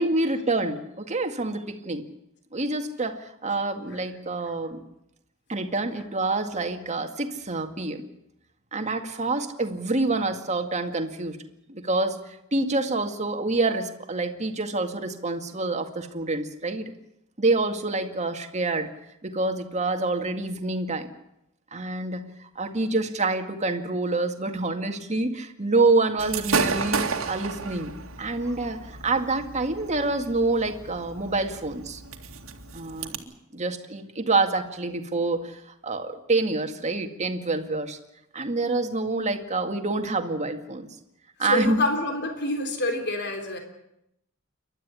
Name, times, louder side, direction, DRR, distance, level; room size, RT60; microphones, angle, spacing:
voice 1, 0.0-2.0 2.5-4.8 5.5-8.0 8.7-11.4 11.7-16.9 17.4-18.9 19.2-21.1 21.7-27.9 28.2-32.0 32.7-33.2 33.5-38.0 38.3-40.9 41.4-41.8, right 2 dB, 35° right, 6 dB, 2.1 m, -27 dB
Gunshot gunfire / Fireworks, 26.2-33.2, right 4 dB, 75° right, 2.3 m, -32 dB
voice 2, 41.4-43.6, left 1 dB, 55° left, 4 dB, 3.5 m, -27 dB
28.5 x 12.5 x 9.7 m, 0.82 s
head